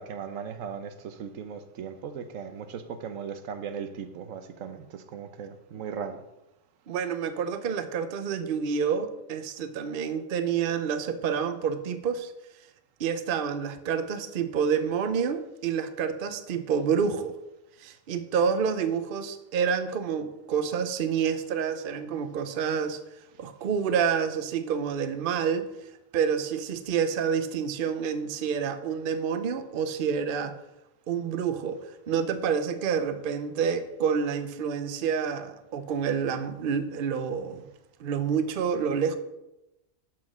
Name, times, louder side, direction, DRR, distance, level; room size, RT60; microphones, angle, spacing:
voice 1, 0.0-6.2, right 7 dB, 80° right, 1.1 m, -38 dB
voice 2, 6.9-12.3 13.0-17.4 17.8-23.0 23.4-25.7 26.1-30.5 31.1-37.7 38.0-39.2, right 7 dB, 50° right, 0.8 m, -28 dB
7.4 x 5.8 x 6.1 m
omnidirectional pair, 1.4 m